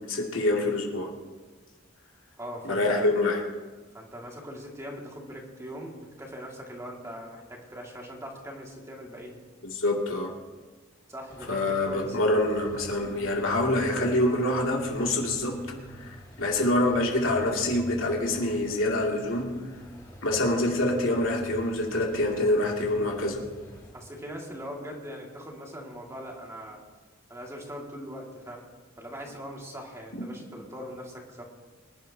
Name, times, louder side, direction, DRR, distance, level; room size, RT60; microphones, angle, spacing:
voice 1, 0.1-1.1 2.6-3.4 9.6-10.3 11.5-15.6 15.9-19.6 20.2-23.4, left 1 dB, 85° left, -1 dB, 2.6 m, -26 dB
voice 2, 2.4-3.1 3.9-9.4 11.1-12.3 23.9-26.8 27.3-28.6 29.0-31.4, equal, 15° right, -1 dB, 2.3 m, -41 dB
sound 1, 11.3-23.9, right 1 dB, 20° left, 3.2 m, -46 dB
24.5 x 11.0 x 2.9 m, 1.3 s
head